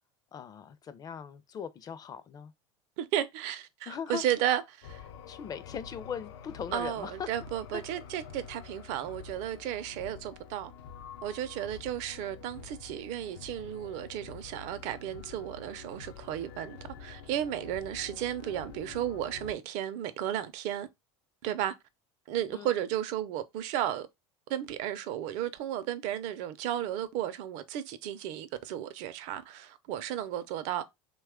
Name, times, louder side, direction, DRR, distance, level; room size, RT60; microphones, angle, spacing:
voice 1, 0.3-2.5 3.9-4.2 5.3-7.3 7.7-7.8 22.5-22.8, left 7 dB, 30° left, 0.4 m, -39 dB
voice 2, 3.0-5.0 6.7-10.7 11.2-20.9 21.4-21.7 22.3-24.1 24.5-30.8, right 11 dB, 60° right, 0.5 m, -34 dB
sound 1, 4.8-19.5, left 6 dB, 80° left, 0.5 m, -48 dB
2.9 x 2.3 x 3.5 m
supercardioid pair, 110°, 14 cm